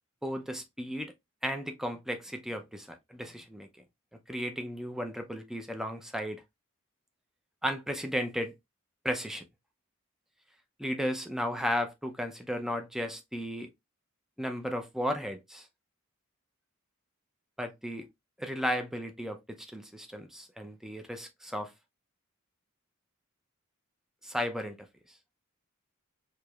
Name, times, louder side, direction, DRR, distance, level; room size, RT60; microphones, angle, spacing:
voice 1, 0.2-1.1 1.4-3.7 4.3-6.4 7.6-8.5 9.0-9.4 10.8-13.7 14.4-15.7 17.6-18.1 18.4-21.7 24.2-24.9, equal, ahead, 0.5 m, -34 dB
4.7 x 2.9 x 2.3 m
head